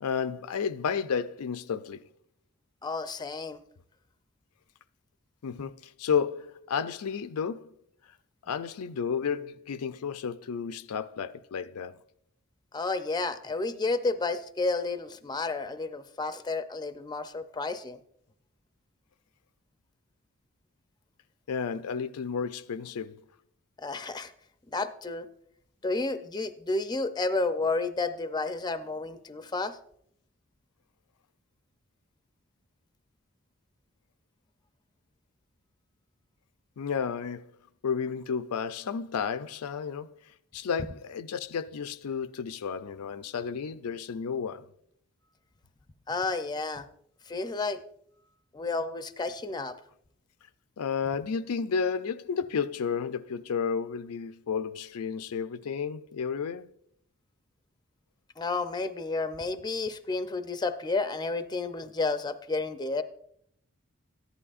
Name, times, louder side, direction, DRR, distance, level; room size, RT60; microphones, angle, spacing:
voice 1, 0.0-2.0 5.4-7.7 8.5-12.0 21.5-23.2 36.8-37.5 37.8-40.1 40.5-44.7 50.8-56.7, left 6 dB, 85° left, 0.5 m, -32 dB
voice 2, 2.8-3.6 12.7-18.0 23.8-24.3 24.7-25.3 25.8-29.8 46.1-46.9 47.3-47.8 48.5-49.8 58.4-63.0, left 3 dB, 20° left, 0.5 m, -31 dB
14.5 x 11.0 x 2.5 m
head